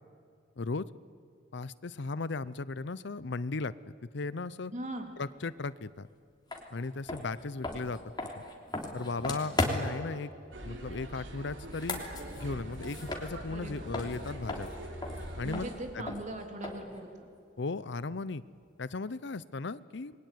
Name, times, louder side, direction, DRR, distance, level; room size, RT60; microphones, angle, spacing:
voice 1, 0.6-0.9 1.5-4.7 5.2-6.1 6.7-8.0 8.9-10.3 10.6-12.0 12.4-14.7 15.4-15.7 15.9-16.1 17.6-18.4 18.8-20.1, left 3 dB, 65° left, 17 dB, 0.7 m, -36 dB
voice 2, 4.7-5.1 13.5-13.9 15.4-17.3, right 1 dB, 40° right, 4 dB, 3.3 m, -40 dB
sound 1, 6.5-6.6 7.0-10.1 11.6-13.7 13.9-17.0, left 2 dB, 25° left, 3.2 m, -36 dB
sound 2, 10.5-15.7, right 1 dB, 85° right, 3.6 m, -43 dB
28.0 x 22.0 x 9.3 m, 2.3 s
head